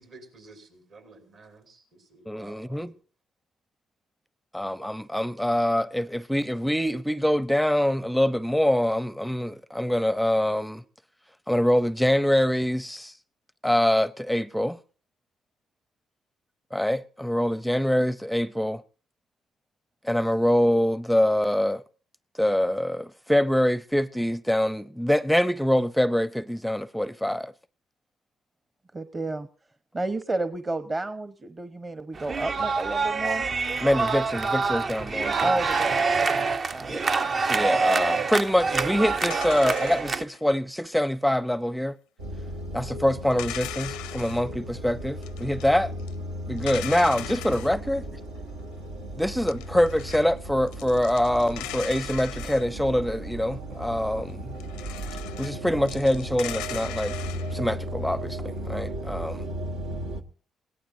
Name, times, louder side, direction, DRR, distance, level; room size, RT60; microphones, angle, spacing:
voice 1, 0.0-3.0, right 3 dB, 65° right, 6.3 m, -51 dB
voice 2, 2.3-2.9 4.5-10.8 11.5-13.1 13.6-14.8 16.7-18.8 20.0-21.8 22.4-27.5 33.8-35.5 36.9-37.0 37.4-41.9 42.7-45.9 46.5-48.0 49.2-54.5 55.4-57.1 57.5-59.4, left 1 dB, ahead, 0.6 m, -24 dB
voice 3, 28.9-29.5 29.9-33.4 35.4-37.0 37.5-37.7, right 2 dB, 30° right, 1.0 m, -31 dB
sound 1, 32.1-40.2, right 4 dB, 45° right, 0.7 m, -26 dB
sound 2, 39.2-40.5 43.3-44.4 45.2-45.7 46.0-46.1 46.6-47.7 49.3-50.2 50.7-53.1 54.6-55.6 55.9-57.5, left 14 dB, 85° left, 0.6 m, -39 dB
sound 3, 42.2-60.2, right 1 dB, 85° right, 1.3 m, -36 dB
21.5 x 17.5 x 2.7 m
hypercardioid pair, 55°, 0 cm